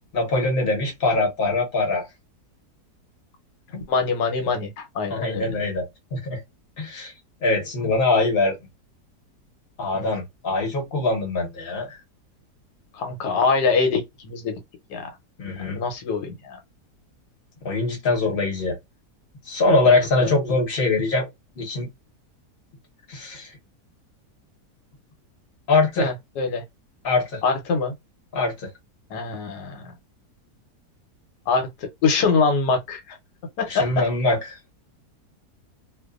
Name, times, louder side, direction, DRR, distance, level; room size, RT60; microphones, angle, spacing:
voice 1, 0.1-2.1 3.7-3.9 5.1-5.9 6.1-6.4 6.8-7.1 7.4-8.6 9.8-12.0 15.4-15.8 17.6-18.8 19.5-21.3 21.6-21.9 23.1-23.5 25.7-26.1 27.0-27.4 28.3-28.7 33.7-34.5, left 3 dB, 40° left, 1.0 m, -22 dB
voice 2, 3.9-5.5 9.9-10.1 12.9-14.5 14.9-15.1 15.6-16.6 19.8-20.3 26.0-26.6 27.4-27.9 29.1-29.9 31.5-31.7 32.0-33.2 33.6-34.0, left 4 dB, 85° left, 1.3 m, -24 dB
2.6 x 2.3 x 2.3 m
omnidirectional pair, 1.7 m